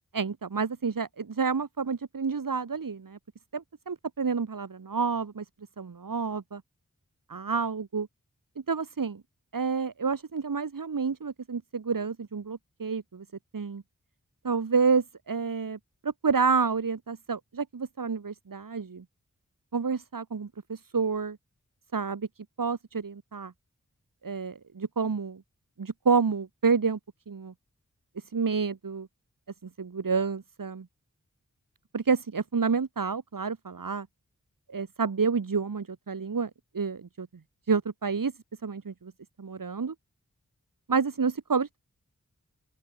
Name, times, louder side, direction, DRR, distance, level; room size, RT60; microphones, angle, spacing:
voice 1, 0.1-3.2 3.5-5.5 5.8-6.6 7.3-8.1 8.7-9.2 9.5-13.3 13.5-13.8 14.4-19.0 19.7-21.4 21.9-22.3 22.6-23.5 24.2-25.4 25.8-27.0 27.3-27.5 28.3-29.1 29.6-30.9 31.9-34.1 34.7-37.3 37.7-38.3 38.6-39.1 39.4-39.9 40.9-41.8, right 5 dB, 90° right, 2.2 m, -29 dB
open air
wide cardioid pair, 50°, 32 cm